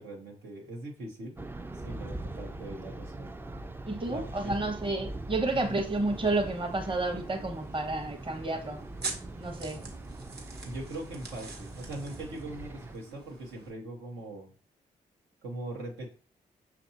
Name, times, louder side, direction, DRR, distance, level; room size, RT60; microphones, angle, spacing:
voice 1, 0.0-1.3 1.7-3.3 4.1-4.7 5.5-5.8 10.6-14.5 15.4-16.1, right 1 dB, 80° right, -1 dB, 1.0 m, -41 dB
sound 1, 1.4-12.9, right 2 dB, 10° right, 0.4 m, -42 dB
voice 2, 3.9-8.8 9.4-9.9, right 2 dB, 25° right, 5 dB, 0.9 m, -31 dB
sound 2, 5.5-13.7, right 4 dB, 60° right, 1.0 m, -46 dB
5.8 x 2.6 x 2.7 m, 0.38 s
supercardioid pair, 45°, 19 cm